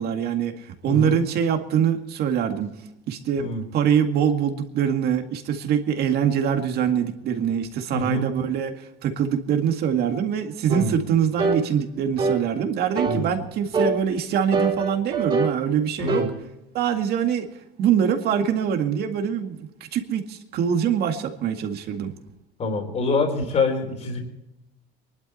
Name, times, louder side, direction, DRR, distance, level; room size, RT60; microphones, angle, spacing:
voice 1, 0.0-2.7 3.1-16.3 16.7-17.5 17.8-22.1, right 8 dB, 55° right, 5 dB, 2.0 m, -24 dB
voice 2, 0.9-1.2 3.4-3.6 7.9-8.3 10.7-10.9 13.1-13.3 16.0-16.3 22.6-24.2, left 3 dB, 35° left, 2 dB, 3.7 m, -25 dB
sound 1, 10.7-10.9 11.4-11.6 12.2-12.4 13.0-13.2 13.7-14.0 14.5-15.6 16.1-16.3, right 4 dB, 25° right, 3.7 m, -23 dB
23.5 x 12.0 x 4.2 m, 0.89 s
cardioid pair, 135°, 19 cm